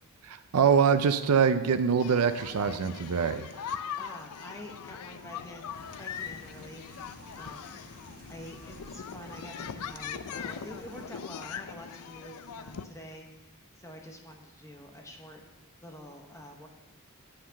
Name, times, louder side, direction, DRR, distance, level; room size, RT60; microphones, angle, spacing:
voice 1, 0.2-3.5, right 6 dB, 80° right, 10 dB, 0.5 m, -24 dB
sound 1, 2.0-12.8, left 7 dB, 85° left, 0.5 m, -41 dB
voice 2, 4.0-7.0 7.3-7.8 8.3-15.4 15.8-16.7, equal, 15° left, 2 dB, 1.0 m, -47 dB
sound 2, 5.7-11.0, right 1 dB, 45° right, 1.3 m, -52 dB
8.6 x 5.8 x 7.5 m, 1.2 s
head